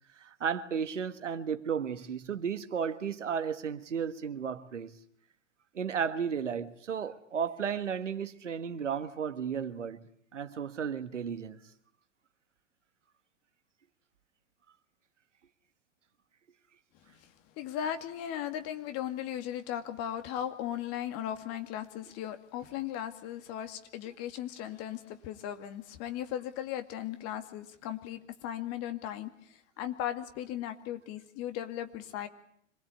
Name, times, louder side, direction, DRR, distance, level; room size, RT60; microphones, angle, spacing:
voice 1, 0.2-4.9 5.7-10.0 10.3-11.6, right 7 dB, 80° right, 1.7 m, -34 dB
voice 2, 17.1-32.3, left 11 dB, 40° left, 2.4 m, -37 dB
26.0 x 20.5 x 8.6 m
figure-of-eight pair, 95°, 36 cm